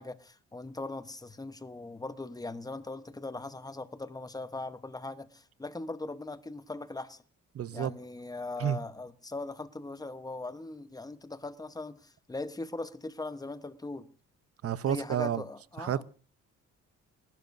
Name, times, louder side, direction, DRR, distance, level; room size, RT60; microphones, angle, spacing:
voice 1, 0.0-7.2 7.7-14.1 14.9-16.0, left 2 dB, 10° left, 1.0 m, -40 dB
voice 2, 7.5-7.9 8.6-8.8 14.6-15.4 15.8-16.0, right 9 dB, 50° right, 0.8 m, -30 dB
30.0 x 12.0 x 2.7 m
cardioid pair, 90°, 30 cm